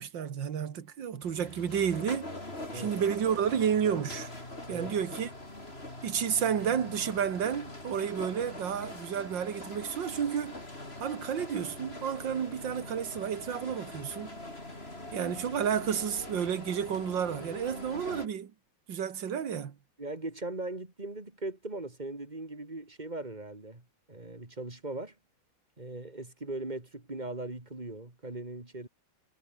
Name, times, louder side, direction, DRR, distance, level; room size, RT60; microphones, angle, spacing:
voice 1, 0.0-2.3 2.7-4.3 4.7-5.3 6.0-10.6 11.0-14.4 15.1-18.5 18.9-19.7, right 8 dB, 70° right, 2.3 m, -31 dB
sound 1, 1.2-18.3, left 1 dB, 30° left, 6.0 m, -43 dB
voice 2, 20.0-25.1 25.8-28.9, right 2 dB, 20° right, 3.3 m, -39 dB
omnidirectional pair, 2.1 m